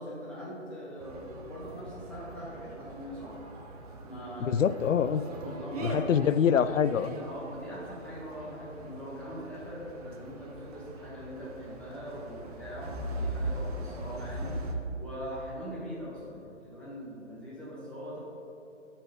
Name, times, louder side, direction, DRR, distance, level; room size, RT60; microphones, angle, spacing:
voice 1, 0.0-3.3 4.0-4.7 5.1-6.1 7.1-14.6 15.0-18.2, equal, 5° left, -8 dB, 1.5 m, -42 dB
sound 1, 1.0-14.7, right 1 dB, 30° right, 0.8 m, -41 dB
voice 2, 4.4-5.2 5.8-7.1, left 8 dB, 85° left, 15 dB, 0.5 m, -25 dB
12.0 x 4.4 x 5.3 m, 3.0 s
figure-of-eight pair, 145°, 38 cm